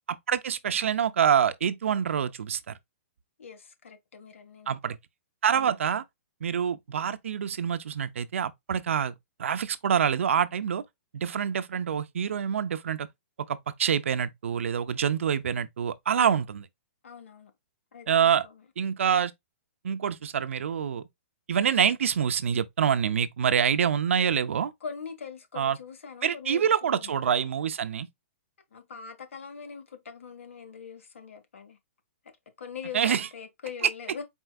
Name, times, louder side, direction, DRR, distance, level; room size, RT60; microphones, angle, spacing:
voice 1, 0.1-2.7 4.7-5.0 5.4-6.0 6.4-9.1 9.4-10.8 11.1-13.1 13.5-16.6 18.1-18.5 18.8-19.3 19.8-21.0 21.5-24.7 25.6-25.8 26.2-28.1 32.9-33.3 33.8-33.9, right 8 dB, 70° right, 0.6 m, -26 dB
voice 2, 3.4-4.8 5.5-5.7 16.1-16.4 17.0-17.5 17.9-18.6 24.8-27.1 28.7-31.8 32.6-34.2, left 6 dB, 70° left, 1.6 m, -42 dB
4.5 x 4.3 x 2.3 m
hypercardioid pair, 180°, 7 cm